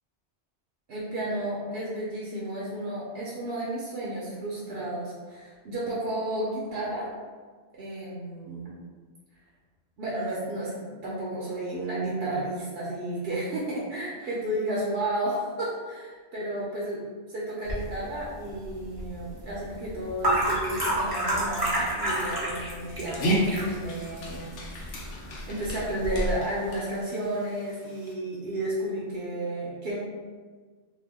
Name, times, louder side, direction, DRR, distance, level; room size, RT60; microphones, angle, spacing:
voice 1, 0.9-7.1 7.8-8.7 10.0-10.7 11.0-17.0 17.3-24.4 25.5-30.0, right 1 dB, 65° right, -6 dB, 0.8 m, -32 dB
sound 1, 17.6-26.3, right 1 dB, 25° right, 0.7 m, -31 dB
Dog, 22.8-28.1, right 1 dB, 90° left, 0.9 m, -33 dB
2.8 x 2.2 x 3.4 m, 1.5 s
omnidirectional pair, 1.2 m